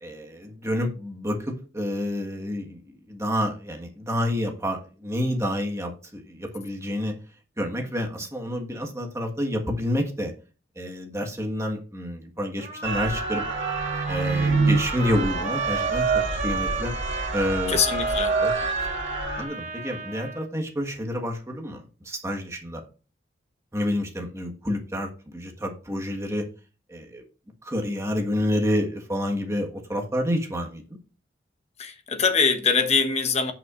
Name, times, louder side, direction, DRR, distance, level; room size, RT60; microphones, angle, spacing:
voice 1, 0.0-2.8 3.1-7.1 7.6-10.3 10.7-13.7 14.1-16.9 17.3-17.8 18.4-18.5 18.8-18.9 19.4-22.8 23.7-26.4 26.9-27.2 27.6-30.8, equal, 15° right, 1.5 m, -29 dB
Trumpet, 12.6-20.5, right 4 dB, 40° right, 1.4 m, -34 dB
sound 1, 12.8-19.4, right 4 dB, 75° right, 2.0 m, -26 dB
voice 2, 17.7-18.4 31.8-33.5, left 5 dB, 35° left, 1.1 m, -23 dB
16.5 x 5.8 x 2.5 m
head